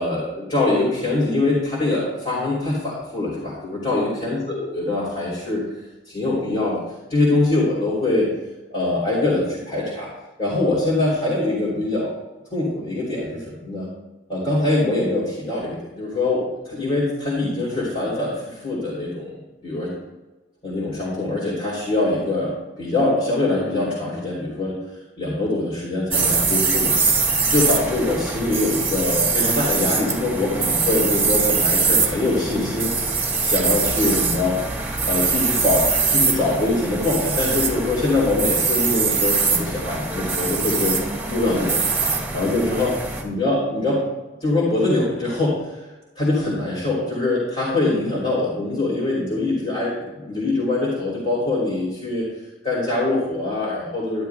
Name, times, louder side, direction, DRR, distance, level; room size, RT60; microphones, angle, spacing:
voice 1, 0.0-5.6 6.1-6.8 7.1-8.3 8.7-10.1 10.4-12.1 12.5-13.9 14.3-19.4 19.6-19.9 20.6-24.8 25.2-32.9 33.4-34.6 35.1-41.0 41.3-42.9 43.2-44.0 44.4-45.8 46.1-52.2 52.6-54.3, left 2 dB, 30° left, -8 dB, 3.2 m, -23 dB
sound 1, 26.1-43.2, right 4 dB, 10° right, 1.5 m, -22 dB
12.5 x 11.0 x 2.3 m, 1.1 s
head